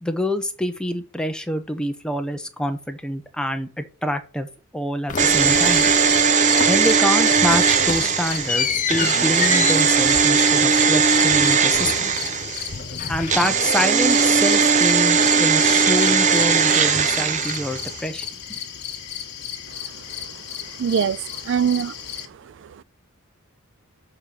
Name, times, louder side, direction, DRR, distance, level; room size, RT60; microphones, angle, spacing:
voice 1, 0.0-4.5 4.7-5.9 6.7-12.1 13.1-18.6, equal, 5° left, 0.8 m, -26 dB
sound 1, 5.1-6.3 6.6-7.1 7.3-12.3 12.6-13.9, left 6 dB, 35° left, 0.7 m, -30 dB
sound 2, 5.2-12.8 13.3-18.0 18.2-18.3, right 6 dB, 35° right, 0.7 m, -18 dB
sound 3, 5.4-22.3, left 9 dB, 50° left, 1.5 m, -35 dB
voice 2, 19.8-20.4 20.7-22.8, right 7 dB, 55° right, 0.3 m, -26 dB
6.8 x 4.4 x 6.7 m
head